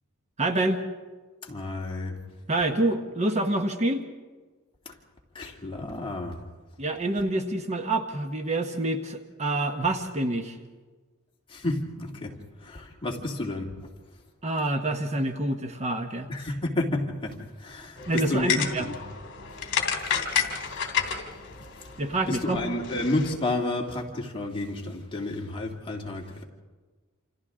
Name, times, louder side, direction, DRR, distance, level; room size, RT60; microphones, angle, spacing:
voice 1, 0.4-0.8 2.5-4.0 6.8-10.6 14.4-16.3 18.1-18.9 22.0-22.6, right 2 dB, 30° right, 6 dB, 1.0 m, -27 dB
voice 2, 1.4-2.2 4.9-5.0 5.3-6.4 11.5-12.3 12.6-13.9 16.3-19.0 20.1-20.5 22.3-26.4, left 2 dB, 25° left, -2 dB, 2.4 m, -31 dB
sound 1, 18.0-23.3, left 7 dB, 60° left, 2.6 m, -31 dB
28.0 x 27.5 x 3.8 m, 1.4 s
head